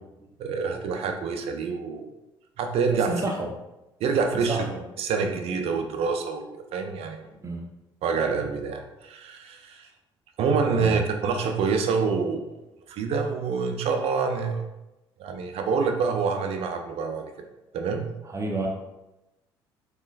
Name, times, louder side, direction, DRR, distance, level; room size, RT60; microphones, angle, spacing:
voice 1, 0.4-2.1 2.6-3.1 4.0-4.6 5.0-7.2 8.0-9.9 10.4-12.5 12.9-14.6 15.2-17.3 17.7-18.1, right 5 dB, 55° right, 5 dB, 0.5 m, -26 dB
voice 2, 2.9-3.5 4.5-4.8 7.4-7.7 10.7-11.0 18.2-18.7, right 2 dB, 25° right, -1 dB, 1.0 m, -30 dB
3.8 x 3.0 x 2.5 m, 0.98 s
hypercardioid pair, 60°, 12 cm